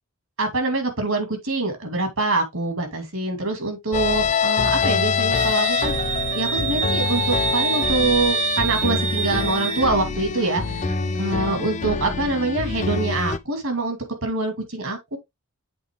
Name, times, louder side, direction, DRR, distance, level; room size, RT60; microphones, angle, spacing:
voice 1, 0.4-5.9 6.3-15.2, right 2 dB, 65° right, 2.6 m, -25 dB
sound 1, 3.9-13.4, left 5 dB, 35° left, 0.6 m, -25 dB
Wind instrument woodwind instrument, 5.3-9.9, right 8 dB, 30° right, 0.8 m, -26 dB
sound 2, 5.8-13.1, right 1 dB, 85° right, 3.3 m, -38 dB
8.0 x 4.2 x 3.8 m
head